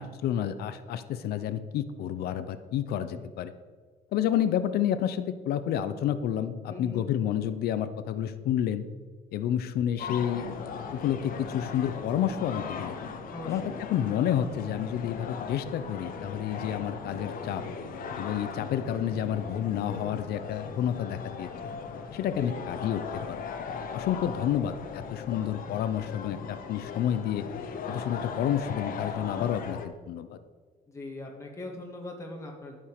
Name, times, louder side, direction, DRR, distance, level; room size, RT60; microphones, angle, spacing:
voice 1, 0.0-3.5 4.1-8.8 9.3-13.0 13.5-13.6 13.9-17.6 18.2-21.5 22.1-23.5 23.9-27.4 27.9-30.4, left 10 dB, 80° left, 12 dB, 0.8 m, -30 dB
voice 2, 6.7-7.0 13.3-13.8 22.3-22.6 30.9-32.8, left 2 dB, 20° left, 0 dB, 1.9 m, -41 dB
sound 1, 10.0-29.9, left 6 dB, 60° left, 1.2 m, -38 dB
sound 2, 10.4-20.2, right 7 dB, 85° right, 1.4 m, -51 dB
12.5 x 5.5 x 6.7 m, 1.5 s
cardioid pair, 120°, 16 cm